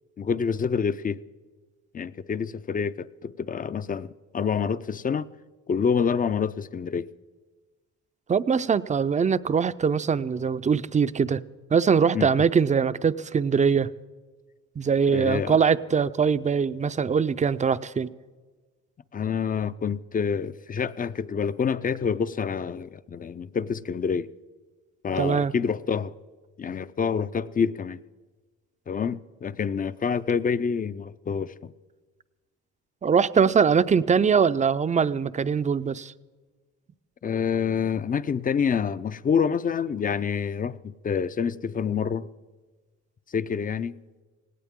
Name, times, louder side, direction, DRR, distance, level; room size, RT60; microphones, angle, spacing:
voice 1, 0.2-1.2 1.9-5.3 5.7-7.1 12.1-12.3 15.1-15.6 19.1-24.3 25.0-26.1 26.6-28.0 28.9-31.7 37.2-42.3 43.3-43.9, left 6 dB, 30° left, 0.4 m, -27 dB
voice 2, 8.3-11.4 11.7-13.9 14.8-18.1 25.2-25.5 33.0-36.1, right 6 dB, 25° right, 0.5 m, -22 dB
18.0 x 17.5 x 3.7 m
cardioid pair, 90°, 30 cm